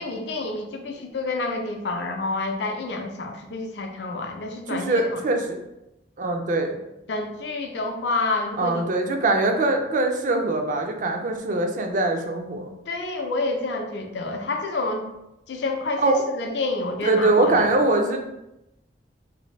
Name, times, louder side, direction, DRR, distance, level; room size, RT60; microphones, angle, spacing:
voice 1, 0.0-5.2 7.1-8.9 12.9-15.1 15.5-17.7, left 3 dB, 70° left, 4 dB, 0.5 m, -28 dB
voice 2, 4.7-5.6 6.2-6.8 8.6-12.7 16.0-16.2 17.0-18.2, right 2 dB, 45° right, 4 dB, 0.4 m, -22 dB
2.6 x 2.5 x 3.1 m, 0.90 s
head